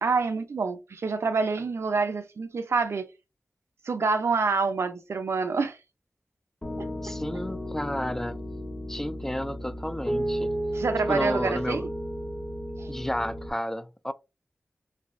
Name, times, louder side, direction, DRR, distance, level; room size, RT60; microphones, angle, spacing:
voice 1, 0.0-3.1 3.8-5.8 10.7-11.9 12.8-12.9, right 4 dB, 80° right, 0.6 m, -27 dB
Piano, 6.6-13.5, equal, 25° left, 1.1 m, -33 dB
voice 2, 7.0-8.4 8.9-10.5 11.1-11.9 12.9-14.1, left 1 dB, 10° left, 0.4 m, -31 dB
3.3 x 3.2 x 2.6 m
wide cardioid pair, 80°, 4 cm